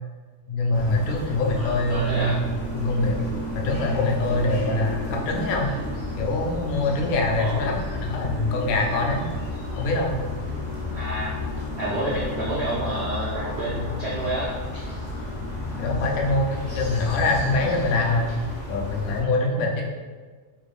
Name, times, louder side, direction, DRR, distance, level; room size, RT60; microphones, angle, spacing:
voice 1, 0.5-2.3 2.7-3.2 3.6-5.7 6.2-9.2 9.8-10.2 15.8-18.3 18.7-19.9, left 2 dB, 70° left, 1 dB, 0.9 m, -24 dB
sound 1, 0.7-19.2, left 1 dB, 45° left, 0.5 m, -32 dB
voice 2, 1.6-2.4 7.4-7.7 10.9-11.3 11.8-14.5, right 1 dB, 70° right, -6 dB, 0.6 m, -29 dB
3.5 x 2.5 x 3.2 m, 1.4 s
omnidirectional pair, 1.7 m